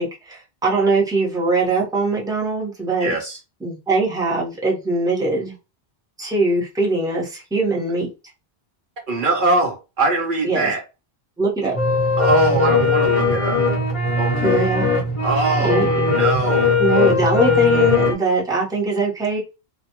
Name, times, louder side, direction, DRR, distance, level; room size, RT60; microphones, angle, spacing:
voice 1, 0.0-3.1 3.6-5.5 6.2-8.1 10.4-10.7 11.4-11.8 14.4-14.9 15.6-15.9 16.8-19.4, right 2 dB, 5° right, -4 dB, 0.7 m, -21 dB
voice 2, 3.0-3.4 9.1-10.8 12.2-13.6 14.2-14.7 15.2-16.8, right 3 dB, 60° right, 2 dB, 0.7 m, -22 dB
sound 1, 11.7-18.1, left 3 dB, 35° left, 0.7 m, -19 dB
2.2 x 2.1 x 2.8 m, 0.28 s
omnidirectional pair, 1.1 m